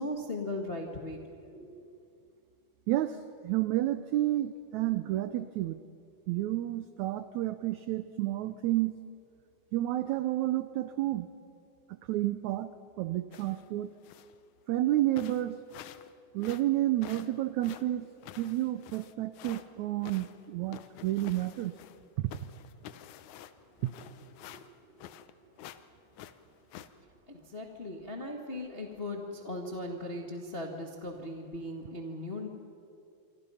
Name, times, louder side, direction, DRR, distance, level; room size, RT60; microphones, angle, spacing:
voice 1, 0.0-1.9 24.4-25.2 25.4-25.5 27.3-32.5, left 1 dB, 45° left, 2 dB, 0.7 m, -39 dB
voice 2, 2.9-5.8 6.3-8.9 9.7-11.3 12.1-12.7 13.0-13.9 14.7-15.6 16.3-18.1 18.4-21.7 22.2-22.3 23.8-23.9, right 15 dB, 90° right, 12 dB, 1.6 m, -30 dB
sound 1, 13.3-13.7 14.0-14.4 14.8-14.9 15.2-16.1 16.4-19.6 20.0-22.0 22.3-25.3 25.6-25.8 26.1-26.9, left 11 dB, 75° left, 1.9 m, -49 dB
26.5 x 25.0 x 5.6 m, 2.4 s
omnidirectional pair, 4.1 m